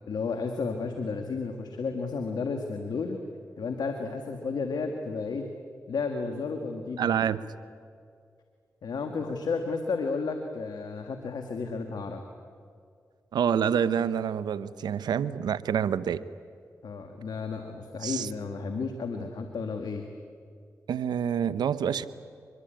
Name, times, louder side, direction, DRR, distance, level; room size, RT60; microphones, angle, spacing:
voice 1, 0.1-3.2 3.6-5.5 5.9-7.3 8.8-12.2 16.8-20.1, left 4 dB, 80° left, 5 dB, 1.7 m, -32 dB
voice 2, 7.0-7.4 13.3-16.2 18.0-18.3 20.9-22.1, right 8 dB, 90° right, 16 dB, 0.7 m, -27 dB
24.0 x 22.0 x 8.9 m, 2.3 s
supercardioid pair, 40°, 7 cm